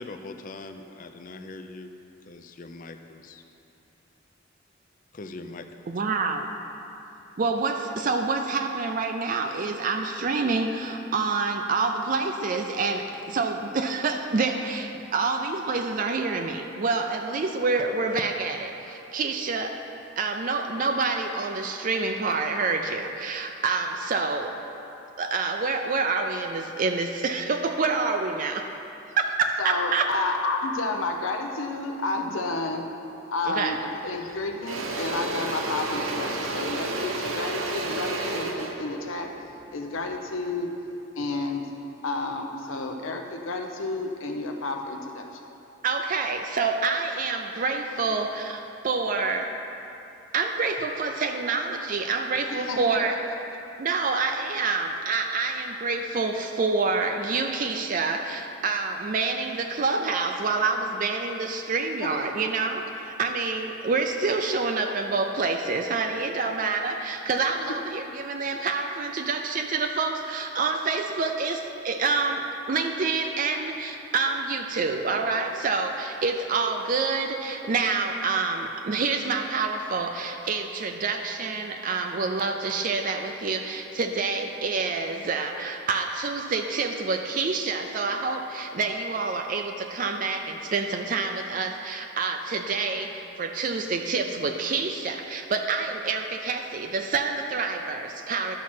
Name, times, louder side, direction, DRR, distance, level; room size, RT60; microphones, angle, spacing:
voice 1, 0.0-1.9 2.3-3.4 5.1-5.7, left 2 dB, 40° left, 7 dB, 0.5 m, -41 dB
voice 2, 5.9-6.5 7.4-19.8 20.2-24.5 25.2-28.7 29.2-30.1 33.5-33.8 45.8-49.6 50.3-53.2 53.8-98.6, right 4 dB, 40° right, 4 dB, 0.4 m, -27 dB
voice 3, 29.6-32.9 33.3-40.8 41.2-41.7 42.0-45.3 52.5-53.0, left 2 dB, 80° left, 3 dB, 0.7 m, -31 dB
Engine / Drill, 33.7-33.9 34.3-40.4, right 2 dB, 90° right, 0.8 m, -31 dB
11.5 x 6.1 x 4.3 m, 2.8 s
head